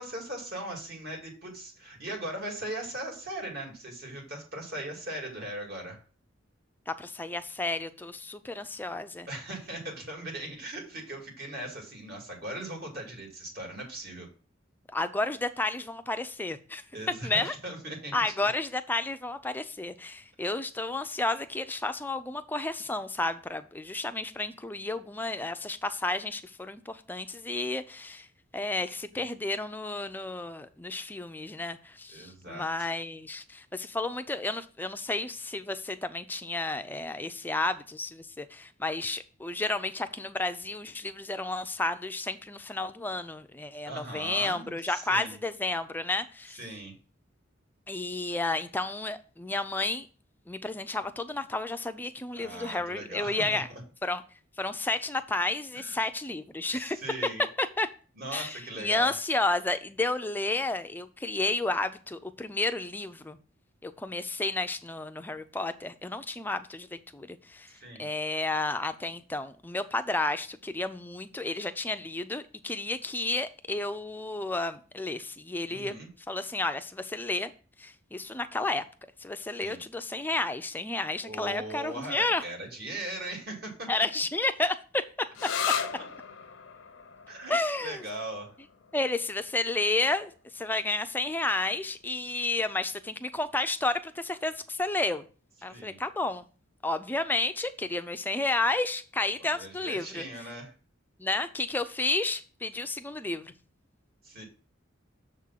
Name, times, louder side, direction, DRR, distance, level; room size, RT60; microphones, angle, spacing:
voice 1, 0.0-6.0 9.3-14.3 16.9-18.5 29.1-29.2 32.1-32.9 43.9-45.4 46.6-46.9 52.3-53.8 55.7-56.0 56.7-57.4 58.2-59.1 67.7-68.1 75.7-76.1 79.6-79.8 81.2-83.9 85.7-85.8 87.3-87.5 87.8-88.5 95.7-96.0 99.5-100.7 104.2-104.4, right 1 dB, 55° right, 2.2 m, -39 dB
voice 2, 6.9-9.3 14.9-16.8 17.2-17.6 18.1-28.3 28.5-46.6 47.9-50.1 50.5-53.7 54.0-54.2 54.6-57.0 57.6-57.9 58.3-63.4 63.8-67.7 68.0-75.9 76.3-77.5 77.8-78.9 79.2-82.4 83.9-85.0 85.4-85.5 87.5-88.0 88.9-95.3 95.6-96.4 96.8-100.3 101.2-103.5, left 2 dB, 10° left, 0.4 m, -31 dB
sound 1, 85.3-92.7, left 7 dB, 75° left, 0.6 m, -38 dB
6.8 x 3.7 x 5.7 m
head